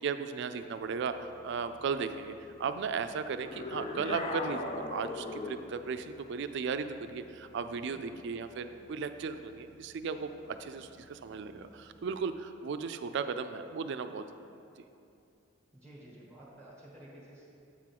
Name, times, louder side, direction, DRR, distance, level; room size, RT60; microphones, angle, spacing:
voice 1, 0.0-2.3 2.6-14.2, right 5 dB, 65° right, 9 dB, 0.4 m, -36 dB
sound 1, 0.5-12.2, right 1 dB, 80° left, 1.3 m, -62 dB
sound 2, 3.4-5.8, left 3 dB, 35° left, 0.4 m, -37 dB
voice 2, 7.8-8.5 8.8-9.0 15.7-17.5, right 1 dB, 5° left, -6 dB, 1.2 m, -53 dB
8.1 x 3.7 x 5.8 m, 2.6 s
head